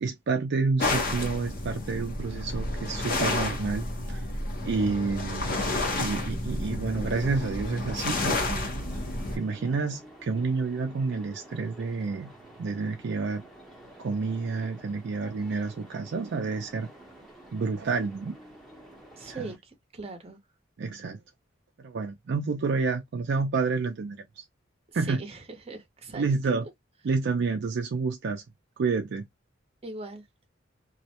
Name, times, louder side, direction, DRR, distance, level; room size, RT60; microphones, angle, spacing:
voice 1, 0.0-4.2 4.6-5.6 5.9-8.7 9.3-12.3 12.6-13.4 14.0-16.9 17.5-18.4 19.3-19.5 20.8-21.2 21.8-24.4 24.9-25.2 26.1-26.7 27.0-28.4 28.8-29.2, right 4 dB, 60° right, 0.4 m, -29 dB
sound 1, 0.8-9.4, left 2 dB, 50° left, 0.7 m, -30 dB
sound 2, 7.7-19.6, right 1 dB, ahead, 0.8 m, -50 dB
voice 2, 19.2-19.6 19.9-20.4 25.1-25.4 25.7-26.2 29.8-30.2, right 3 dB, 30° right, 0.7 m, -39 dB
2.3 x 2.1 x 2.8 m
head